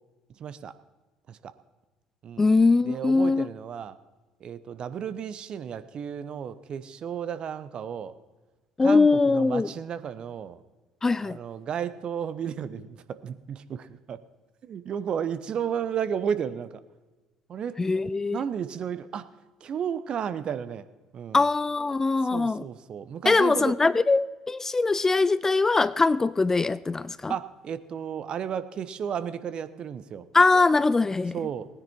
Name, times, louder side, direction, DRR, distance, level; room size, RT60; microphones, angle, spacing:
voice 1, 0.4-0.7 1.3-1.5 2.2-2.5 2.8-4.0 4.4-8.1 8.8-10.6 11.2-14.2 14.6-16.8 17.5-17.8 18.3-19.3 19.6-20.9 21.1-21.4 22.2-23.8 27.3-30.3 31.3-31.7, right 8 dB, 45° right, 0.8 m, -33 dB
voice 2, 2.4-3.5 8.8-9.7 11.0-11.4 17.8-18.4 21.3-22.6 23.3-27.3 30.3-31.3, left 3 dB, 20° left, 0.4 m, -22 dB
18.5 x 10.0 x 4.5 m
hypercardioid pair, 60°, 2 cm